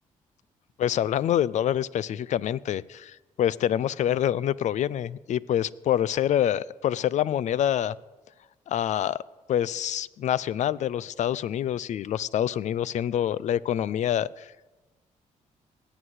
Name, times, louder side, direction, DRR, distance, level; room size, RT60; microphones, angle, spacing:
voice 1, 0.8-7.9 8.7-9.2 9.5-14.5, left 10 dB, 65° left, 20 dB, 0.5 m, -26 dB
18.0 x 8.1 x 8.0 m, 1.2 s
cardioid pair, 85°, 13 cm